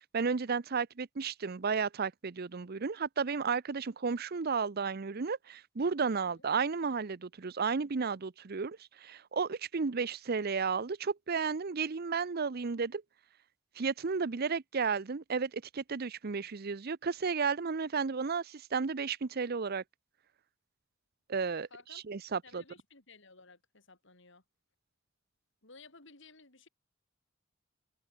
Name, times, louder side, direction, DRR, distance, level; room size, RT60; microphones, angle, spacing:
voice 1, 0.1-13.0 13.8-19.8 21.3-22.6, right 5 dB, 50° right, 0.6 m, -33 dB
voice 2, 21.7-22.0 22.4-24.4 25.6-26.7, left 4 dB, 65° left, 5.6 m, -56 dB
open air
head